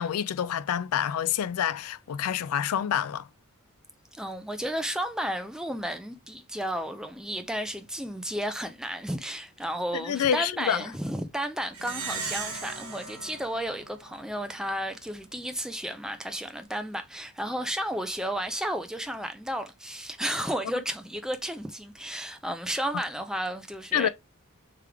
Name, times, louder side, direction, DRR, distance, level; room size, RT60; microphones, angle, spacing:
voice 1, 0.0-3.3 9.9-10.8 23.9-24.1, left 9 dB, 70° left, 0.4 m, -27 dB
voice 2, 4.1-24.1, equal, 5° right, 0.5 m, -33 dB
Plucked string instrument, 11.7-14.6, right 5 dB, 75° right, 1.3 m, -37 dB
3.4 x 3.3 x 3.5 m
head